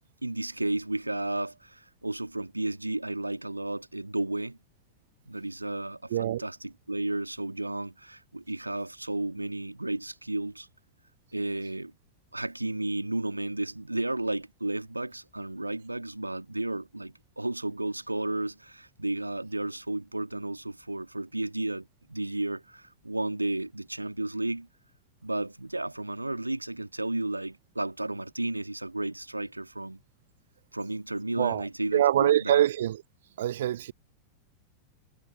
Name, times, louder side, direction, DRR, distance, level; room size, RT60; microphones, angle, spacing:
voice 1, 0.2-4.6 5.3-10.7 11.3-11.9 12.3-24.7 25.2-30.0 30.7-32.6, right 2 dB, 85° right, 2.1 m, -33 dB
voice 2, 6.1-6.4 31.4-31.6 31.9-33.0 33.4-33.9, right 12 dB, 60° right, 0.3 m, -24 dB
figure-of-eight pair, 90°, 0 cm